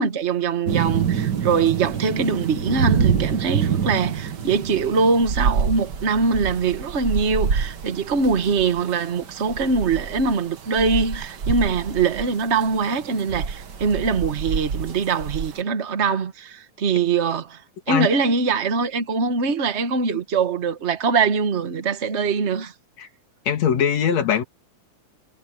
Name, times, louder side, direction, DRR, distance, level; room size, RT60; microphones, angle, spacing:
voice 1, 0.0-17.6 17.9-22.7, right 5 dB, 80° right, 0.6 m, -22 dB
sound 1, 0.7-15.6, right 6 dB, 45° right, 1.4 m, -27 dB
voice 2, 23.5-24.4, left 8 dB, 60° left, 3.1 m, -21 dB
omnidirectional pair, 3.5 m